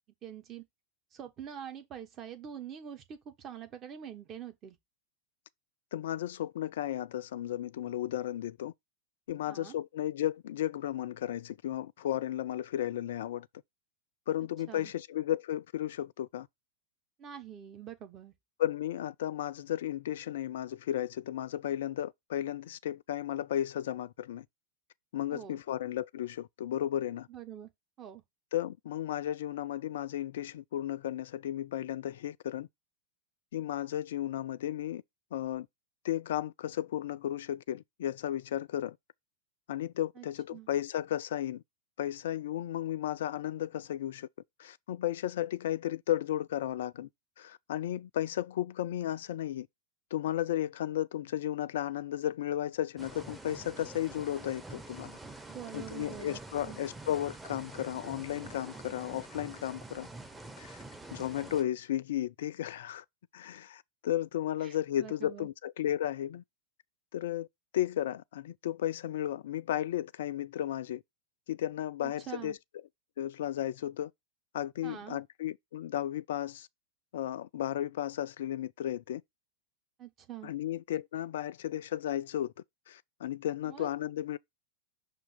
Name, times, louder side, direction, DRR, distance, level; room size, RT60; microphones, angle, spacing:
voice 1, 0.2-0.6 1.1-4.8 9.5-9.8 14.7-14.9 17.2-18.3 25.3-25.6 27.3-27.7 28.0-28.2 40.2-40.3 40.5-40.7 55.4-56.4 56.6-56.8 64.6-65.5 72.0-72.6 74.8-75.2 80.0-80.5 83.6-83.9, right 9 dB, 30° right, 1.3 m, -45 dB
voice 2, 5.9-8.7 9.3-13.5 14.3-16.5 18.6-24.5 25.1-27.3 28.5-32.7 33.5-35.0 35.3-35.7 36.0-39.0 39.7-41.6 42.0-44.3 44.6-47.1 47.4-49.7 50.1-55.2 55.7-60.1 60.6-60.8 61.1-63.0 63.3-66.4 67.1-67.5 67.7-71.0 71.5-72.6 73.2-74.1 74.5-76.7 77.1-79.2 80.4-82.5 82.9-84.4, left 12 dB, 60° left, 0.3 m, -34 dB
sound 1, 53.0-61.6, right 2 dB, 5° right, 0.9 m, -47 dB
5.9 x 2.9 x 5.5 m
figure-of-eight pair, 90°, 0 cm